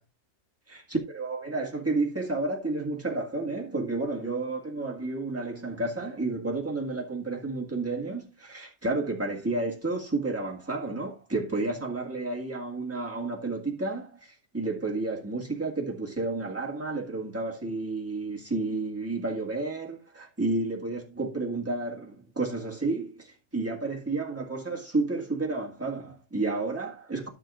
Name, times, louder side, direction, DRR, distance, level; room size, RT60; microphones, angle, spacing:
voice 1, 0.7-27.3, right 3 dB, 10° right, 1.7 m, -31 dB
13.5 x 6.6 x 2.5 m
omnidirectional pair, 1.5 m